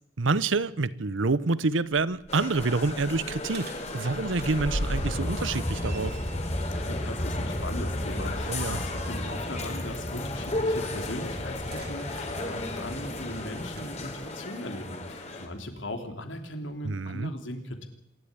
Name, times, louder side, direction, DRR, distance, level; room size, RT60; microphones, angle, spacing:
voice 1, 0.2-6.2 8.5-8.8 16.8-17.3, right 3 dB, 85° right, 0.9 m, -27 dB
sound 1, 2.2-8.5 9.0-9.1 11.6-14.0 15.0-15.1 15.9-16.0, equal, 55° right, 3.0 m, -39 dB
sound 2, 2.3-15.5, left 2 dB, 35° left, 3.6 m, -35 dB
sound 3, 5.0-14.3, equal, 15° left, 1.0 m, -35 dB
voice 2, 6.7-17.9, left 1 dB, 75° left, 3.4 m, -38 dB
26.5 x 12.0 x 9.9 m
head